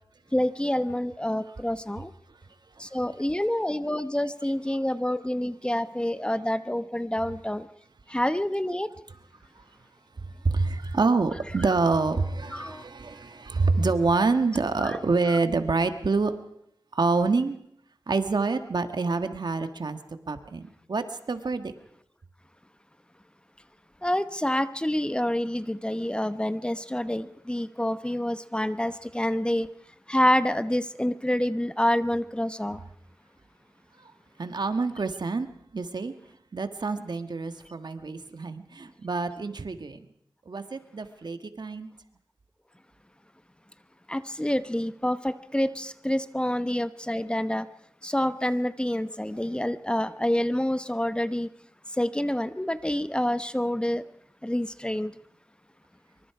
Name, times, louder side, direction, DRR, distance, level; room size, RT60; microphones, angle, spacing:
voice 1, 0.3-2.1 2.8-7.7 8.1-8.9 12.5-12.8 24.0-29.7 30.1-32.8 44.1-47.6 48.0-51.5 52.0-54.0 54.4-55.1, left 1 dB, 10° left, 12 dB, 0.9 m, -27 dB
voice 2, 10.2-16.3 16.9-17.6 18.1-20.0 20.3-21.7 34.0-34.1 34.4-35.5 35.7-36.1 36.5-40.1 40.4-41.9, right 3 dB, 70° right, 9 dB, 1.6 m, -27 dB
25.5 x 24.0 x 4.9 m, 0.70 s
wide cardioid pair, 80°, 8 cm